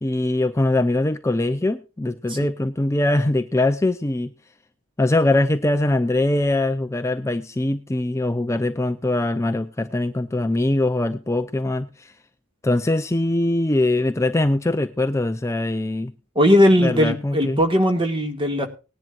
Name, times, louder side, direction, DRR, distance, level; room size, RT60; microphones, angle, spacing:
voice 1, 0.0-4.3 5.0-12.1 12.6-16.1 16.8-17.6, left 2 dB, 15° left, 8 dB, 0.5 m, -22 dB
voice 2, 16.4-18.7, equal, 25° right, 6 dB, 2.0 m, -18 dB
19.5 x 10.5 x 2.5 m, 0.31 s
head